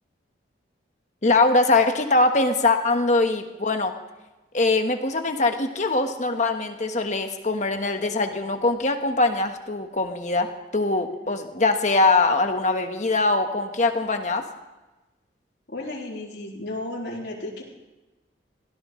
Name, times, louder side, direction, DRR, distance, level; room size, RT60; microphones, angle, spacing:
voice 1, 1.2-3.9 4.5-14.4, left 3 dB, 40° left, 5 dB, 1.3 m, -22 dB
voice 2, 15.7-17.6, left 2 dB, 70° left, -4 dB, 3.9 m, -33 dB
22.5 x 17.0 x 3.2 m, 1.1 s
head